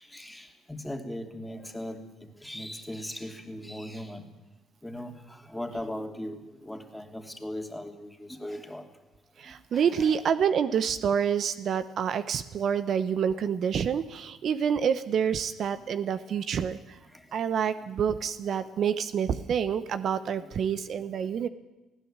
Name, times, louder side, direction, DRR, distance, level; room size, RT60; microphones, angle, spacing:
voice 1, 0.0-2.0 2.4-4.2 4.8-8.8 9.7-10.2 18.5-18.6 20.1-20.8, left 1 dB, 5° left, 5 dB, 2.8 m, -39 dB
voice 2, 9.4-17.0 17.3-21.5, right 7 dB, 60° right, 13 dB, 0.9 m, -27 dB
19.5 x 16.0 x 8.9 m, 1.0 s
supercardioid pair, 70°, 0 cm